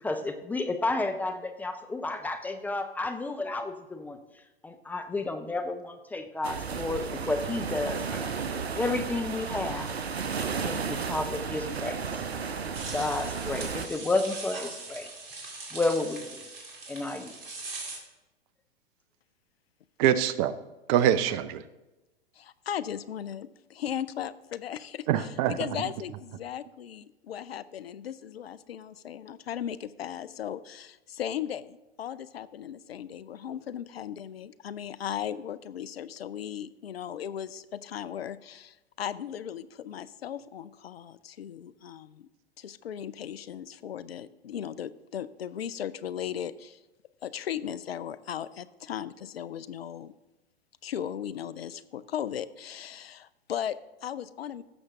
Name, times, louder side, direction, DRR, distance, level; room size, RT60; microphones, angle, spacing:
voice 1, 0.0-4.2 4.6-8.4 8.7-9.9 10.6-12.0 12.9-15.1 15.7-16.3 16.9-17.3, left 2 dB, 5° left, 0.3 m, -31 dB
sound 1, 6.4-13.9, right 6 dB, 85° right, 0.8 m, -33 dB
sound 2, 12.7-18.0, right 3 dB, 65° right, 2.6 m, -41 dB
voice 2, 20.0-20.5 20.9-21.6 25.1-25.8, right 10 dB, 40° right, 0.6 m, -24 dB
voice 3, 22.4-42.3 42.6-46.8 47.2-50.1 50.8-54.6, left 9 dB, 75° left, 0.5 m, -37 dB
15.0 x 6.5 x 3.6 m
figure-of-eight pair, 100°, 31 cm